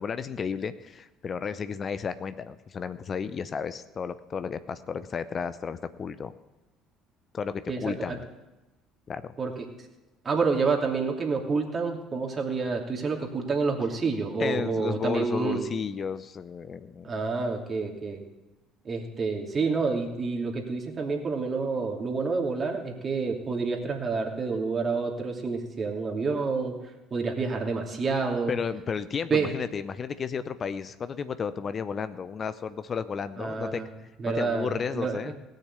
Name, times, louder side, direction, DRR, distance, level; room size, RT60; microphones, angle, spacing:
voice 1, 0.0-6.3 7.3-8.2 9.1-9.3 14.4-17.1 28.5-34.1 34.3-35.4, left 6 dB, 40° left, 13 dB, 0.6 m, -33 dB
voice 2, 7.7-8.2 9.4-9.5 10.2-15.7 17.0-18.2 18.8-26.7 27.1-28.5 29.3-29.5 33.4-33.8 34.2-35.2, right 4 dB, 35° right, 1 dB, 2.9 m, -28 dB
18.0 x 6.7 x 8.2 m, 1.0 s
hypercardioid pair, 60°, 0 cm